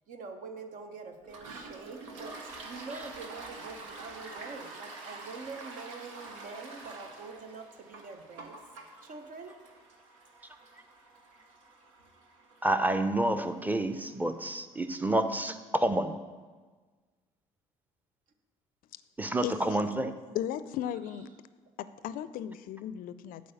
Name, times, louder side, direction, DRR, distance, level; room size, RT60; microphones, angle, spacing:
voice 1, 0.1-8.6 9.0-9.6, right 4 dB, 55° right, 6 dB, 1.0 m, -45 dB
Toilet flush, 1.2-14.6, right 3 dB, 85° right, 1.0 m, -47 dB
voice 2, 12.6-16.2 19.2-20.1, right 1 dB, 10° right, 9 dB, 0.7 m, -29 dB
voice 3, 19.4-19.8 20.3-21.3 21.8-23.4, left 11 dB, 60° left, 15 dB, 0.5 m, -36 dB
8.4 x 4.6 x 7.0 m, 1.4 s
hypercardioid pair, 60°, 16 cm